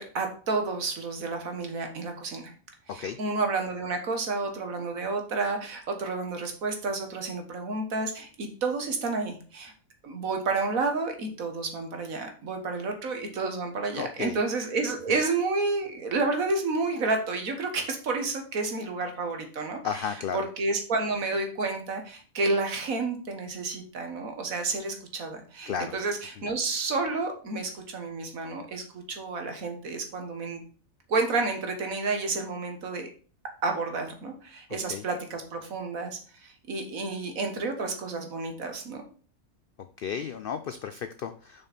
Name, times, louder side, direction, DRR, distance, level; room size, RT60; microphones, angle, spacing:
voice 1, 0.0-2.5 2.9-9.7 10.0-30.6 31.1-33.1 33.6-39.0, right 3 dB, 70° right, 4 dB, 1.8 m, -30 dB
voice 2, 13.9-14.4 19.8-20.5 25.7-25.9 34.9-35.0 40.0-41.7, left 7 dB, 65° left, 9 dB, 0.5 m, -33 dB
6.9 x 5.5 x 4.2 m, 0.40 s
omnidirectional pair, 1.5 m